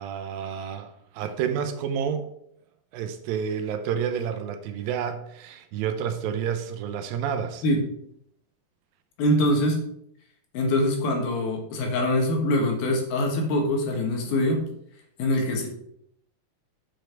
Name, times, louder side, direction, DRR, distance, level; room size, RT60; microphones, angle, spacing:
voice 1, 0.0-2.3 2.9-7.6, right 8 dB, 85° right, 8 dB, 2.3 m, -29 dB
voice 2, 9.2-9.8 10.5-14.7 15.2-15.7, left 1 dB, 80° left, 2 dB, 3.1 m, -24 dB
7.6 x 5.1 x 4.5 m, 0.73 s
omnidirectional pair, 4.2 m